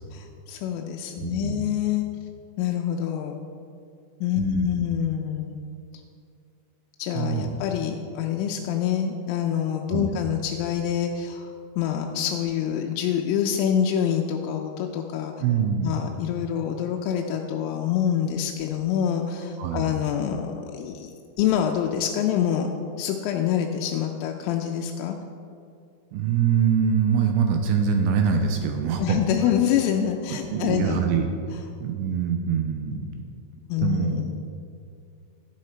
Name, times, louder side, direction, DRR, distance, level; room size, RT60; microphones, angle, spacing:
voice 1, 0.1-2.1 2.6-3.4 4.2-5.6 7.0-15.3 15.8-21.1 21.4-22.7 23.0-25.2 29.0-31.0 33.7-34.3, left 9 dB, 90° left, 2 dB, 3.2 m, -26 dB
voice 2, 1.2-1.6 4.4-4.7 7.2-7.5 9.9-10.2 15.4-15.9 19.6-19.9 26.1-29.2 30.3-31.3 31.8-33.1 33.8-34.3, right 7 dB, 85° right, 4 dB, 2.7 m, -24 dB
11.0 x 9.8 x 4.4 m, 2.3 s
omnidirectional pair, 5.7 m